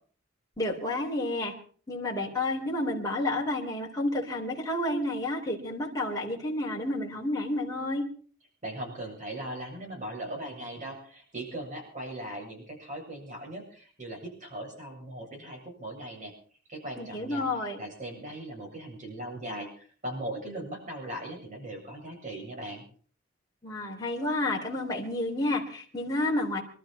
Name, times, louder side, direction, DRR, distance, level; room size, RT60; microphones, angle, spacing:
voice 1, 0.6-1.5 1.9-8.0 17.0-17.8 23.6-26.6, left 1 dB, 20° left, -3 dB, 3.7 m, -30 dB
voice 2, 8.6-16.3 16.7-17.5 17.8-22.8, right 1 dB, 40° right, 1 dB, 7.8 m, -39 dB
25.5 x 13.0 x 4.4 m, 0.44 s
head